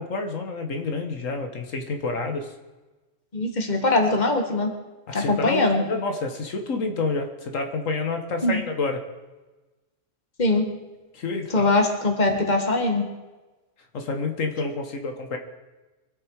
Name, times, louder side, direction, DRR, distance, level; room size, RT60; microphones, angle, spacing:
voice 1, 0.0-2.5 5.1-9.0 11.1-11.7 13.9-15.4, left 3 dB, 90° left, 5 dB, 1.7 m, -29 dB
voice 2, 3.3-4.7 5.1-5.8 8.4-8.6 10.4-10.7 11.5-13.1, left 2 dB, 35° left, 4 dB, 1.8 m, -22 dB
24.0 x 8.7 x 4.7 m, 1.2 s
omnidirectional pair, 1.3 m